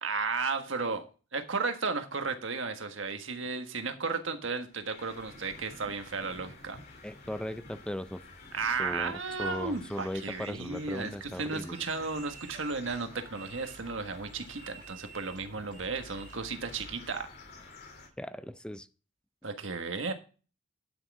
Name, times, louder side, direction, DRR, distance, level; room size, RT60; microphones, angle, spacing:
voice 1, 0.0-1.1 1.3-6.8 8.5-17.3 19.4-20.1, right 4 dB, 90° right, 7 dB, 1.5 m, -34 dB
sound 1, 4.6-18.1, left 2 dB, 55° left, 2.8 m, -51 dB
voice 2, 7.0-8.2 8.8-9.1 9.4-11.8 18.2-18.9, left 1 dB, 5° left, 13 dB, 0.5 m, -37 dB
sound 2, 11.6-16.5, right 7 dB, 45° right, 2.4 m, -52 dB
11.5 x 6.4 x 4.8 m, 0.36 s
head